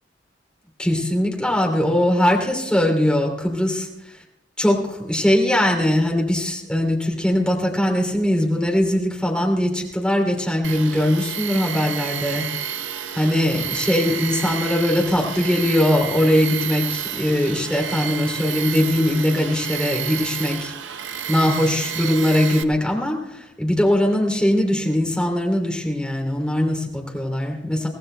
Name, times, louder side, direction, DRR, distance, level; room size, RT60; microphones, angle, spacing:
voice 1, 0.8-3.8 4.6-12.4 13.1-20.7 21.3-27.9, left 1 dB, 5° left, 0 dB, 2.9 m, -21 dB
Tools, 10.6-22.6, right 8 dB, 85° right, 0.7 m, -30 dB
24.5 x 18.0 x 2.2 m, 0.91 s
head